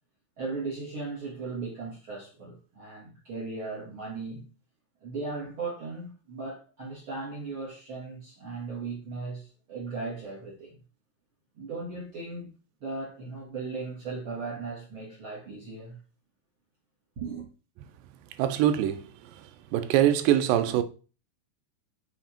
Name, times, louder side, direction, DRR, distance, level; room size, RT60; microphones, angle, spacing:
voice 1, 0.4-4.5 5.0-10.8 11.6-12.5 12.8-16.0 17.2-17.5, right 3 dB, 50° right, 1.9 m, -37 dB
voice 2, 18.4-19.0 19.7-20.8, right 11 dB, 80° right, 2.3 m, -23 dB
7.1 x 3.5 x 4.3 m
omnidirectional pair, 4.1 m